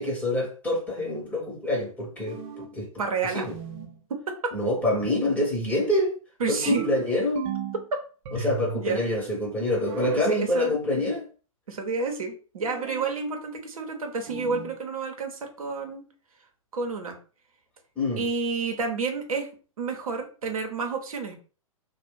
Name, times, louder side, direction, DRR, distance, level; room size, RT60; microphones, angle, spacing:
voice 1, 0.0-2.9 3.3-3.5 4.5-6.2 6.5-7.5 8.3-11.3 18.0-18.2, left 1 dB, 10° left, 0.9 m, -26 dB
sound 1, 2.3-2.8 3.5-4.0 6.7-7.8 8.2-8.9 9.9-10.4 12.7-13.2 14.3-14.8, right 8 dB, 45° right, 0.7 m, -36 dB
voice 2, 3.0-3.5 4.1-4.2 6.4-6.9 8.3-8.5 8.7-9.0 10.3-10.7 11.7-16.0 16.7-17.2 18.2-19.5 19.8-21.4, right 4 dB, 75° right, 0.8 m, -30 dB
2.5 x 2.1 x 3.6 m
hypercardioid pair, 115°, 18 cm